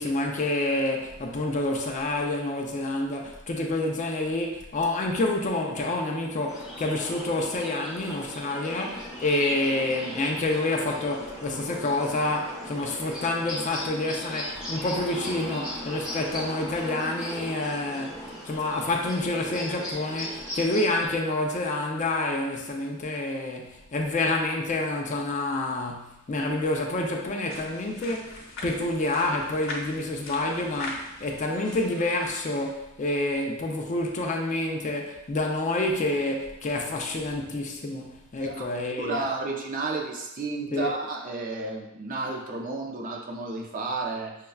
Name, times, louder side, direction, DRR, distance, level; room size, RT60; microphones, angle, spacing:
voice 1, 0.0-28.4 28.6-39.2 40.7-40.9, left 2 dB, 35° left, 1 dB, 0.4 m, -28 dB
sound 1, 6.5-21.1, equal, 5° right, 0.8 m, -38 dB
sound 2, 27.5-32.7, left 2 dB, 70° left, 0.9 m, -41 dB
voice 2, 38.4-38.7 39.0-44.4, right 3 dB, 40° right, 0 dB, 0.5 m, -32 dB
6.4 x 2.2 x 2.3 m, 0.89 s
head